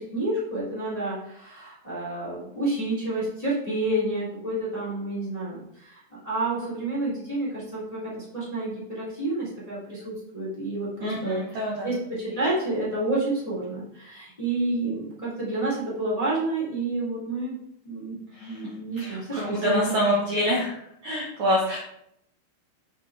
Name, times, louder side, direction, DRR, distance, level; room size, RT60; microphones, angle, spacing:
voice 1, 0.0-11.6 11.8-17.5 17.8-20.0, right 2 dB, 15° left, -8 dB, 1.7 m, -29 dB
voice 2, 11.0-11.9 18.4-18.5 19.0-20.7 21.0-21.8, equal, 85° right, -4 dB, 1.6 m, -26 dB
7.8 x 6.2 x 3.4 m, 0.75 s
omnidirectional pair, 5.6 m